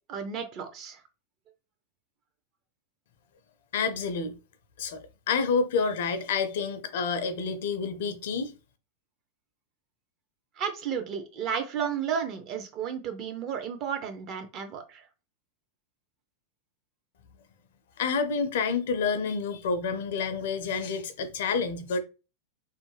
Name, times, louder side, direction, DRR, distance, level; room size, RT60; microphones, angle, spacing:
voice 1, 0.1-1.0 10.6-15.0, right 7 dB, 35° right, 0.5 m, -33 dB
voice 2, 3.7-4.4 4.8-8.5 18.0-22.0, left 5 dB, 55° left, 0.4 m, -29 dB
2.5 x 2.1 x 3.1 m
figure-of-eight pair, 90°, 0 cm